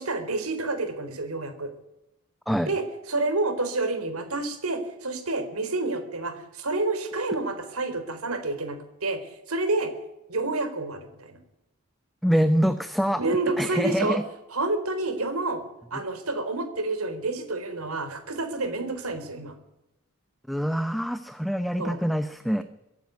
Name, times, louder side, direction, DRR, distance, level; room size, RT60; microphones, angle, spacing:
voice 1, 0.0-1.7 2.6-9.9 10.3-11.4 13.2-14.2 14.5-15.6 15.9-19.6 21.8-22.0, right 2 dB, 85° right, 8 dB, 4.1 m, -29 dB
voice 2, 12.2-13.2 13.6-14.2 20.5-22.6, equal, ahead, 10 dB, 0.7 m, -25 dB
24.0 x 11.5 x 9.5 m, 0.92 s
head